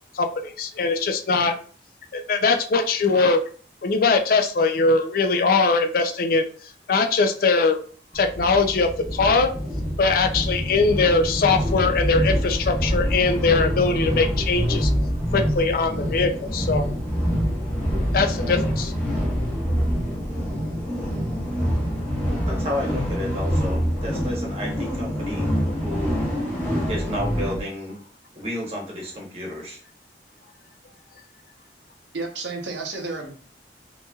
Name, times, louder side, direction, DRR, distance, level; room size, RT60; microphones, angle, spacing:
voice 1, 0.1-1.5 2.1-3.4 3.8-6.5 6.9-7.8 8.1-9.5 10.0-14.9 15.3-16.8 18.1-18.9, left 4 dB, 55° left, 5 dB, 0.4 m, -21 dB
sound 1, 8.1-27.6, equal, 10° left, 1.0 m, -25 dB
voice 2, 22.5-25.5 25.8-26.2 26.9-28.0 28.4-29.8, left 1 dB, 35° right, -2 dB, 1.0 m, -31 dB
voice 3, 32.1-33.3, right 3 dB, 85° right, 1 dB, 0.8 m, -31 dB
2.8 x 2.8 x 2.3 m, 0.42 s
head